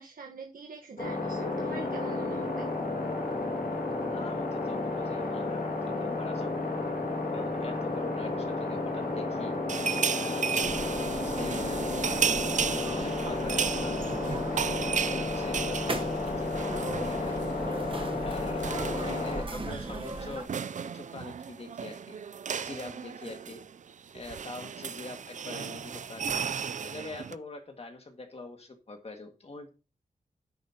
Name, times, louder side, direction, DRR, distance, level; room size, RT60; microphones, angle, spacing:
voice 1, 0.0-2.7, right 3 dB, 75° right, 1 dB, 1.2 m, -43 dB
sound 1, 1.0-19.4, left 2 dB, 80° left, 2.0 m, -32 dB
voice 2, 4.1-6.6 7.2-9.5 10.1-12.2 12.6-14.0 14.5-17.6 18.2-20.5 20.9-22.2 22.6-23.6 24.1-26.4 26.8-29.7, left 3 dB, 45° left, 4 dB, 1.9 m, -43 dB
sound 2, 9.7-17.6 17.8-18.0 18.3-27.3, right 7 dB, 60° right, 0.4 m, -34 dB
sound 3, 10.6-20.5, right 2 dB, 35° right, 1.0 m, -38 dB
10.5 x 8.5 x 2.9 m, 0.32 s
wide cardioid pair, 130°, 15 cm